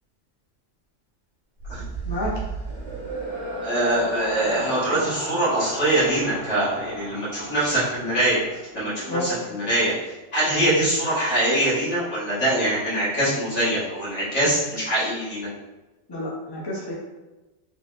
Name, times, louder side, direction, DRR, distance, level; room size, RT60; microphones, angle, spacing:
sound 1, 1.6-9.0, right 3 dB, 25° right, 0.8 m, -34 dB
voice 1, 3.6-8.4 8.7-9.9 10.3-15.5, right 1 dB, 60° left, -10 dB, 2.0 m, -23 dB
voice 2, 16.1-16.9, left 1 dB, 25° left, -4 dB, 0.6 m, -29 dB
3.9 x 3.4 x 2.4 m, 1.1 s
omnidirectional pair, 1.3 m